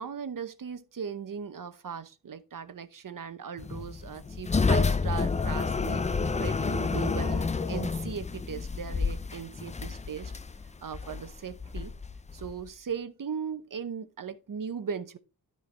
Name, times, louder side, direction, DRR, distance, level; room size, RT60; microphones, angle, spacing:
voice 1, 0.0-10.3 10.8-11.9 12.3-15.2, right 7 dB, 55° right, 0.9 m, -38 dB
sound 1, 3.6-12.7, left 4 dB, 20° left, 0.3 m, -29 dB
13.0 x 4.6 x 3.3 m
wide cardioid pair, 135°, 40 cm